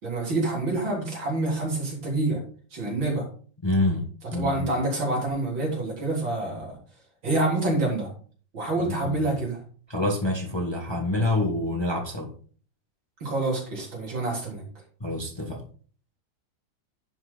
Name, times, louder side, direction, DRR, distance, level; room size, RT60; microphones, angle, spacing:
voice 1, 0.0-2.4 2.7-3.3 4.3-6.8 7.2-8.1 8.5-9.6 13.2-14.6, right 2 dB, 70° right, -2 dB, 4.3 m, -27 dB
voice 2, 3.6-4.7 8.8-9.3 9.9-12.3 15.0-15.6, left 2 dB, 15° left, 0 dB, 1.5 m, -27 dB
11.0 x 6.2 x 4.0 m, 0.43 s
omnidirectional pair, 2.2 m